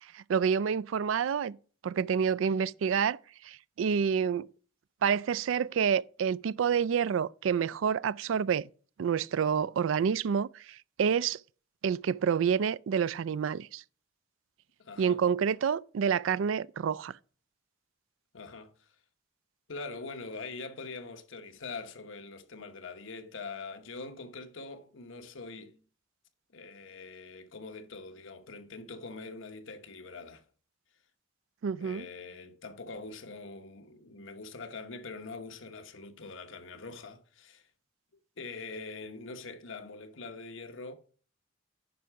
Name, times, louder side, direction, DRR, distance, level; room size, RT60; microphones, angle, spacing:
voice 1, 0.1-1.6 1.8-3.2 3.4-4.5 5.0-8.7 9.0-11.4 11.8-13.8 15.0-17.1 31.6-32.1, right 7 dB, 80° right, 0.3 m, -28 dB
voice 2, 14.8-15.2 18.3-18.7 19.7-25.8 26.5-30.4 31.8-37.7 38.4-41.0, left 3 dB, 75° left, 1.1 m, -43 dB
9.5 x 5.7 x 4.8 m
head